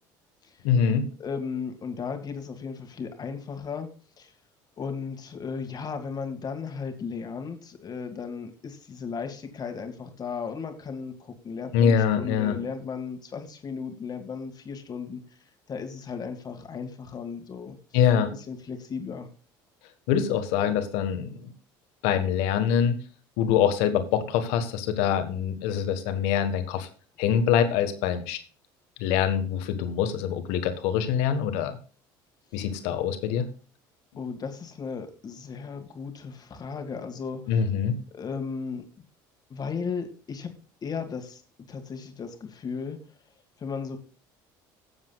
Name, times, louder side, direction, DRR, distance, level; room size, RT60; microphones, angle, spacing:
voice 1, 0.6-1.1 11.7-12.6 17.9-18.3 20.1-21.5 22.0-23.0 23.4-26.9 27.2-28.4 29.0-31.8 32.5-33.5 37.5-38.0, left 8 dB, 75° left, 9 dB, 1.4 m, -24 dB
voice 2, 1.2-3.9 4.2-4.3 4.8-15.2 15.7-17.8 18.3-19.3 32.6-32.7 34.2-37.7 38.1-38.8 39.5-40.5 40.8-41.4 41.7-43.0 43.6-44.0, left 5 dB, 40° left, 6 dB, 2.0 m, -35 dB
17.5 x 7.3 x 2.4 m, 0.38 s
supercardioid pair, 80°, 11 cm